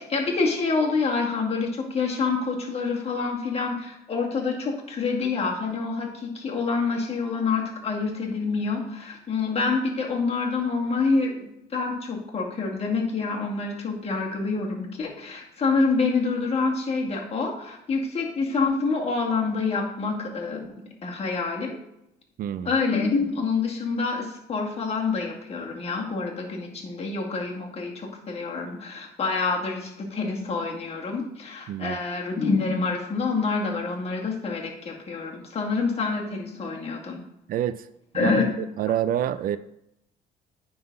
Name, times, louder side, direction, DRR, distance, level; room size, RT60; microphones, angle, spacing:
voice 1, 0.0-20.7 21.0-21.8 22.6-37.2 38.1-38.4, left 4 dB, 35° left, -1 dB, 2.1 m, -27 dB
voice 2, 22.4-22.7 31.7-32.0 37.5-37.8 38.1-38.5 38.8-39.6, right 10 dB, 60° right, 15 dB, 0.4 m, -27 dB
9.5 x 4.0 x 5.3 m, 0.82 s
cardioid pair, 110°, 17 cm